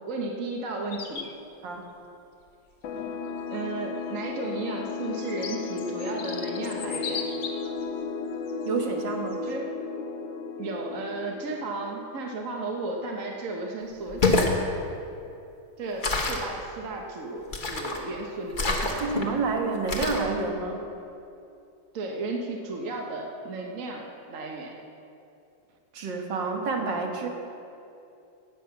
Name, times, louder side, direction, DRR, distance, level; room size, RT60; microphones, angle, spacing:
voice 1, 0.1-1.3 3.5-7.2 9.4-9.7 10.6-14.2 15.8-19.2 21.9-24.7, right 2 dB, 45° right, 0 dB, 1.3 m, -34 dB
sound 1, 0.9-1.3 2.9-3.0 4.1-7.8 8.5-8.7 9.3-9.5, left 6 dB, 55° left, 1.2 m, -38 dB
sound 2, 2.8-12.2, left 5 dB, 70° left, 1.4 m, -34 dB
voice 2, 8.6-9.5 19.0-20.8 25.9-27.3, right 4 dB, 65° right, 2 dB, 2.1 m, -29 dB
sound 3, 14.0-14.6 16.0-16.5 17.5-18.0 18.5-19.2 19.9-20.3, left 3 dB, 30° left, 1.1 m, -26 dB
17.5 x 7.7 x 6.0 m, 2.7 s
omnidirectional pair, 2.2 m